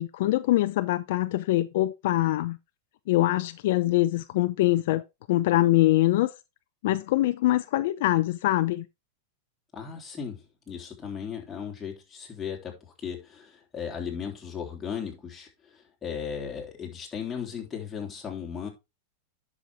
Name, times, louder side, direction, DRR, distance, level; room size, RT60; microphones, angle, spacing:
voice 1, 0.0-2.6 3.1-5.0 5.3-6.3 6.8-8.9, left 16 dB, 65° left, 0.6 m, -23 dB
voice 2, 9.7-18.7, left 7 dB, 15° left, 3.7 m, -36 dB
10.5 x 6.4 x 3.5 m
supercardioid pair, 135°, 0 cm